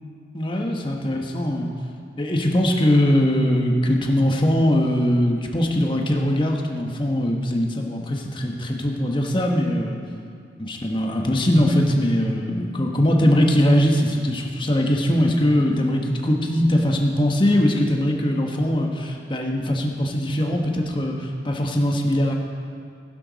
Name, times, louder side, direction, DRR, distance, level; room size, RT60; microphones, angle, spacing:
voice 1, 0.3-1.7 2.2-10.0 10.6-22.3, left 1 dB, 25° left, 1 dB, 1.2 m, -21 dB
15.5 x 11.0 x 4.1 m, 2.3 s
head